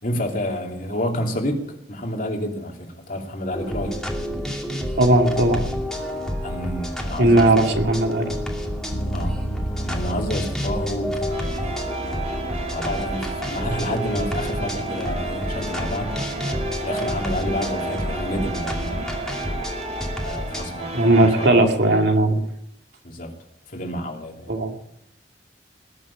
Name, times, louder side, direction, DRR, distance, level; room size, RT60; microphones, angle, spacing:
voice 1, 0.0-4.0 6.4-7.8 9.1-9.4 9.8-11.9 12.7-16.1 16.8-19.2 20.2-21.6 23.0-23.3 23.7-24.5, left 1 dB, 50° left, 1 dB, 3.0 m, -29 dB
sound 1, 3.5-20.7, equal, 5° left, 2.6 m, -29 dB
voice 2, 5.0-5.6 7.2-8.3 20.9-22.4 24.5-24.7, right 1 dB, 70° right, 3 dB, 2.4 m, -17 dB
Bass guitar, 8.9-18.6, right 1 dB, 70° left, 1.9 m, -35 dB
sound 2, 11.3-21.5, right 2 dB, 40° right, 2.7 m, -32 dB
20.5 x 7.4 x 8.7 m, 0.80 s
head